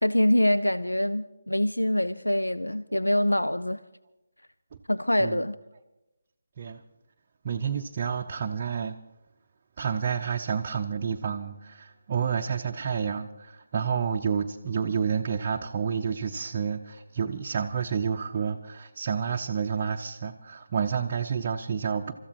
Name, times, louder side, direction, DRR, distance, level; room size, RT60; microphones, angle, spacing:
voice 1, 0.0-3.8 4.9-5.6, left 1 dB, 90° left, 0.4 m, -24 dB
voice 2, 7.4-9.0 9.8-22.1, right 6 dB, 35° right, 0.6 m, -29 dB
29.0 x 14.0 x 2.9 m
figure-of-eight pair, 155°, 0 cm